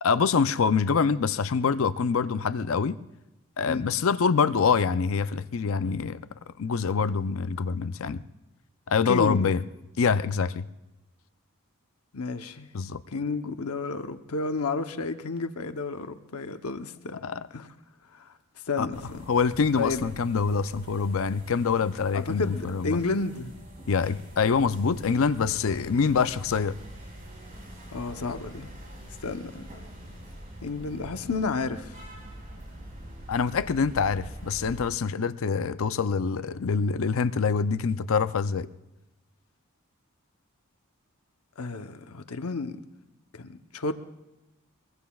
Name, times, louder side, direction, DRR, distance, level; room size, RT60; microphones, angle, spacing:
voice 1, 0.0-3.0 3.6-6.2 6.6-8.2 8.9-9.6 10.0-10.6 12.7-13.0 17.2-17.5 18.8-18.9 19.3-23.0 23.9-26.8 33.3-38.7, left 5 dB, 65° left, 13 dB, 0.5 m, -25 dB
voice 2, 9.0-9.6 12.1-12.7 13.1-17.7 18.1-18.3 18.7-19.2 19.8-20.1 22.1-23.5 27.9-28.7 29.2-29.7 30.6-31.9 41.6-42.8 43.3-43.9, left 3 dB, 85° left, 8 dB, 0.8 m, -31 dB
sound 1, 18.9-34.9, right 1 dB, 40° right, 5.1 m, -44 dB
22.5 x 22.5 x 2.3 m, 0.97 s
head